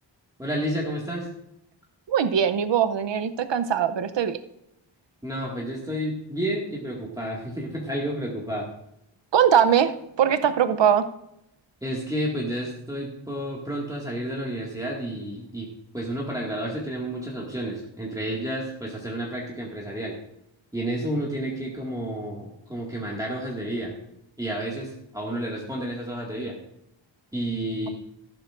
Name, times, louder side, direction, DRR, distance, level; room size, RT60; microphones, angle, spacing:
voice 1, 0.4-1.3 5.2-8.7 11.8-15.7 15.9-20.2 20.7-24.0 24.4-26.6 27.3-27.9, right 1 dB, 10° right, -4 dB, 1.9 m, -30 dB
voice 2, 2.1-4.4 9.3-11.1, right 8 dB, 70° right, 10 dB, 0.7 m, -21 dB
14.0 x 11.5 x 2.5 m, 0.81 s
wide cardioid pair, 115°, 46 cm